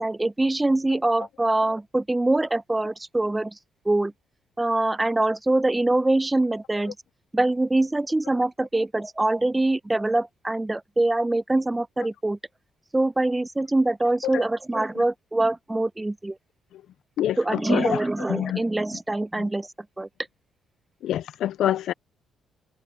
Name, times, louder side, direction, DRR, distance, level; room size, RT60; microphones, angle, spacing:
voice 1, 0.0-3.5 3.9-4.1 4.6-6.9 7.3-12.4 12.9-16.4 17.4-19.7 20.0-20.1, right 2 dB, 15° right, 0.7 m, -24 dB
voice 2, 17.2-18.0 18.3-18.6 21.0-21.9, left 11 dB, 75° left, 0.4 m, -26 dB
cardioid pair, 90°, 0 cm